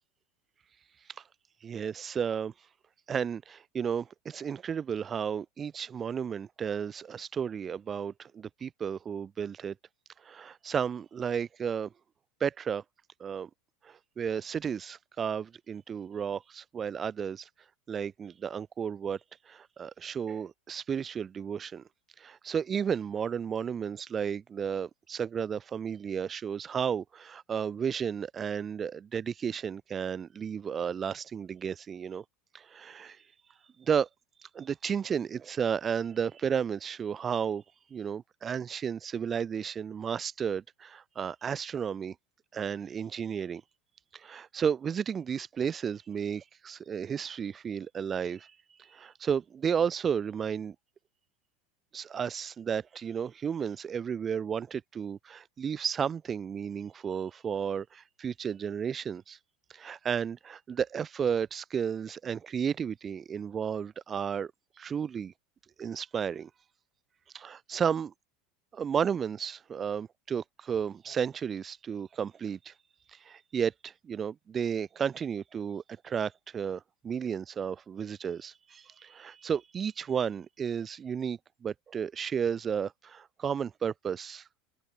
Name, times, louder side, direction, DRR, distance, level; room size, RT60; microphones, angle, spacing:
voice 1, 1.6-2.5 3.1-9.7 10.2-11.9 12.4-12.8 13.2-13.5 13.8-17.5 17.9-19.2 19.5-21.8 22.2-32.2 32.5-33.2 33.8-34.1 34.5-37.6 37.9-42.1 42.5-43.6 44.1-48.5 48.8-50.7 51.9-59.4 59.7-64.5 64.8-65.3 65.8-66.5 67.3-68.1 68.7-72.7 73.1-84.5, right 7 dB, 30° right, 4.5 m, -33 dB
open air
figure-of-eight pair, 80°, 0 cm